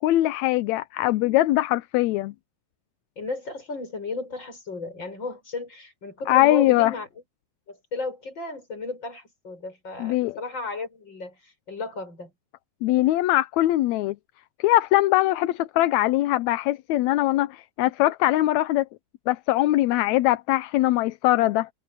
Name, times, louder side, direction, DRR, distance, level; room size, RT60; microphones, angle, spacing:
voice 1, 0.0-2.3 6.3-6.9 10.0-10.4 12.8-14.2 14.6-18.9 19.3-21.7, left 16 dB, 75° left, 1.8 m, -21 dB
voice 2, 3.2-7.1 7.7-12.3, left 3 dB, 35° left, 7.4 m, -34 dB
omnidirectional pair, 3.6 m